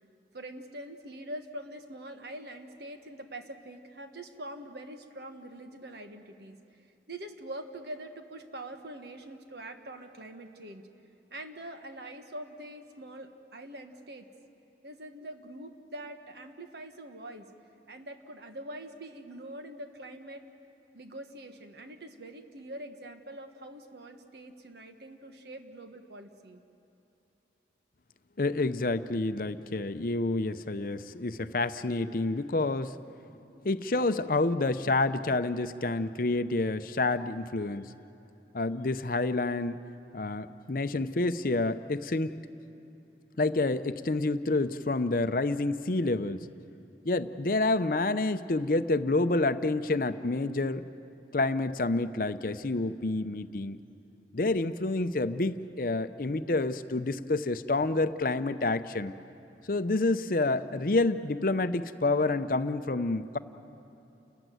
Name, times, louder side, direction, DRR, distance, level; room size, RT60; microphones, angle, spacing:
voice 1, 0.3-6.6 7.1-10.8 11.3-14.3 14.8-17.5 17.9-20.4 20.9-26.6, right 1 dB, 65° right, 6 dB, 1.5 m, -44 dB
voice 2, 28.4-32.9 33.6-37.9 38.5-39.8 40.1-42.4 43.4-46.5 47.1-50.8 51.3-53.8 54.3-59.1 59.7-63.4, left 2 dB, 50° left, 11 dB, 0.6 m, -28 dB
29.5 x 14.5 x 9.2 m, 2.9 s
head